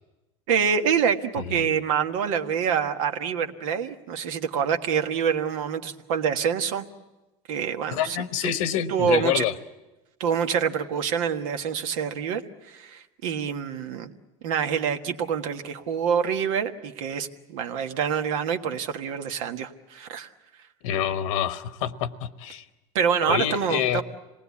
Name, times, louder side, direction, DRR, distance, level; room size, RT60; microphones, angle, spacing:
voice 1, 0.5-6.8 7.5-8.2 8.9-9.4 10.2-14.1 14.4-20.3 22.9-24.0, right 7 dB, 85° right, 6 dB, 1.5 m, -26 dB
voice 2, 7.9-9.5 20.8-22.6 23.3-24.0, left 10 dB, 90° left, 11 dB, 1.2 m, -27 dB
26.0 x 19.5 x 8.4 m, 1.1 s
supercardioid pair, 130°, 17 cm